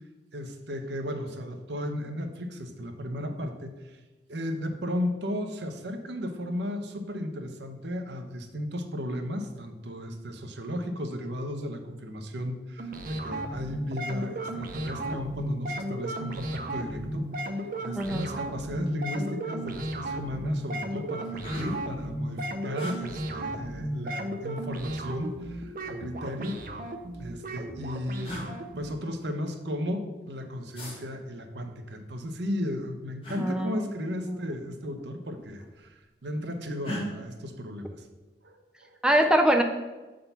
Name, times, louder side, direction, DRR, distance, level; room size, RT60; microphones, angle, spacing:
voice 1, 0.3-4.0 4.3-26.6 27.2-38.1 38.4-39.0, left 1 dB, 75° right, 6 dB, 0.8 m, -35 dB
sound 1, 12.8-28.9, right 1 dB, 50° right, 0.6 m, -34 dB
sound 2, 19.1-19.3 19.7-20.1 20.7-20.8 21.1-22.0 22.8-23.0 24.2-24.9 26.0-26.9 27.8-27.9 28.2-28.5 30.7-31.0 33.2-33.4 34.8-35.0 35.3-35.9 36.8-37.1, equal, 30° left, 1.6 m, -39 dB
voice 2, 33.4-33.9 34.2-34.3 39.0-39.6, right 1 dB, 5° right, 4 dB, 0.4 m, -23 dB
7.0 x 3.8 x 5.6 m, 1.2 s
head